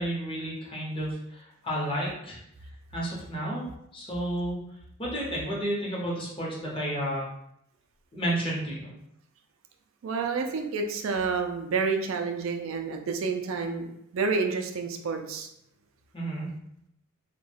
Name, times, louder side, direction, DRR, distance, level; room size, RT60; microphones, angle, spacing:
voice 1, 0.0-2.4 2.9-3.7 3.9-4.6 5.0-7.3 8.1-8.9 16.1-16.5, right 1 dB, 25° left, -5 dB, 0.7 m, -31 dB
voice 2, 10.0-13.9 14.1-15.5, right 4 dB, 75° right, 4 dB, 0.4 m, -29 dB
2.3 x 2.1 x 3.2 m, 0.78 s
head